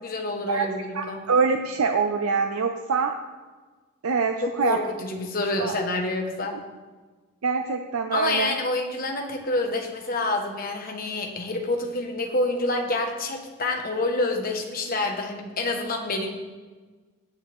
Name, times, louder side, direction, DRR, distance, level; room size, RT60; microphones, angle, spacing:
voice 1, 0.0-1.2 4.6-6.6 8.1-16.3, left 2 dB, 40° left, 2 dB, 1.3 m, -27 dB
voice 2, 0.9-3.1 4.0-4.8 5.6-5.8 7.4-8.5, right 5 dB, 80° right, 5 dB, 0.6 m, -24 dB
17.5 x 7.5 x 3.6 m, 1.4 s
head